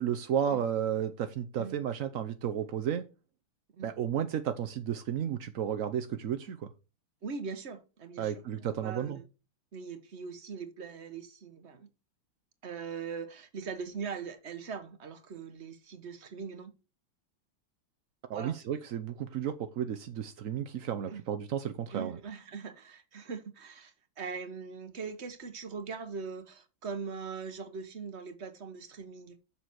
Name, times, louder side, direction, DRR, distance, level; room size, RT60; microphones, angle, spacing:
voice 1, 0.0-3.1 3.8-6.6 8.2-9.2 18.3-22.2, right 9 dB, 65° right, 0.8 m, -33 dB
voice 2, 7.2-9.3 9.7-11.9 12.6-16.7 18.3-18.6 21.1-21.2 21.9-29.4, right 5 dB, 40° right, 1.3 m, -41 dB
7.3 x 7.0 x 6.3 m
omnidirectional pair, 2.3 m